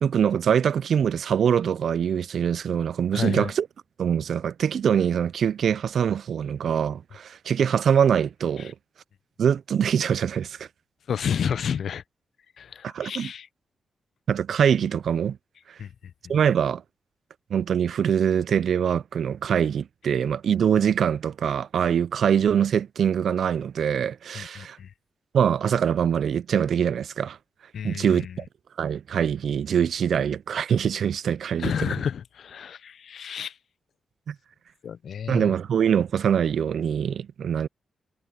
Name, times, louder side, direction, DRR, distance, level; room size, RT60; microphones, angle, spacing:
voice 1, 0.0-3.7 4.0-8.7 9.4-10.7 12.8-13.3 14.3-15.4 16.3-16.8 17.5-24.8 25.3-27.4 27.8-28.4 28.8-31.9 34.3-34.4 35.3-37.7, right 8 dB, 70° right, 0.3 m, -23 dB
voice 2, 3.1-3.5 8.6-8.7 11.1-12.0 12.6-13.5 15.8-15.9 24.4-24.9 27.7-28.4 31.6-33.5 34.8-35.5, left 7 dB, 70° left, 0.5 m, -30 dB
cardioid pair, 90°, 0 cm